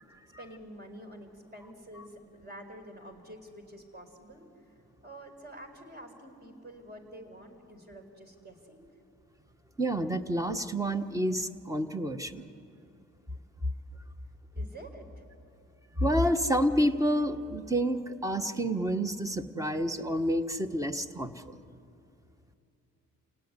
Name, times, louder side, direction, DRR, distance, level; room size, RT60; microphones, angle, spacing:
voice 1, 0.2-4.5 5.0-8.9 14.5-15.2, right 1 dB, 35° right, 5 dB, 4.7 m, -48 dB
voice 2, 9.8-12.5 16.0-21.6, equal, 10° right, 9 dB, 1.3 m, -29 dB
28.5 x 18.0 x 9.8 m, 2.6 s
cardioid pair, 90°, 30 cm